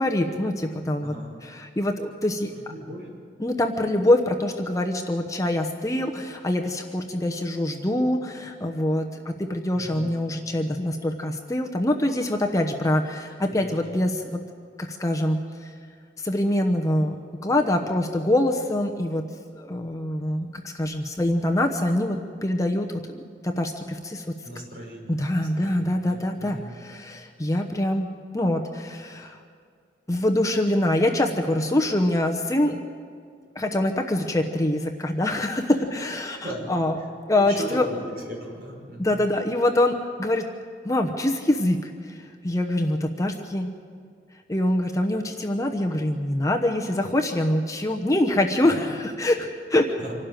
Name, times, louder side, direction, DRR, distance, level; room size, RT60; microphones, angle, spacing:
voice 1, 0.0-1.1 1.4-2.5 3.4-14.4 14.8-15.7 16.2-17.2 17.4-19.2 19.5-24.4 25.1-29.4 30.1-32.8 33.5-37.0 37.3-37.9 39.0-40.4 40.8-43.7 44.5-50.0, left 1 dB, 20° left, 3 dB, 0.9 m, -24 dB
voice 2, 1.0-1.4 2.6-3.1 9.7-10.2 13.5-13.9 24.4-26.7 36.4-36.7 37.3-38.0 38.2-39.2 50.0-50.2, equal, 55° right, -2 dB, 5.7 m, -38 dB
25.5 x 12.0 x 9.1 m, 2.1 s
head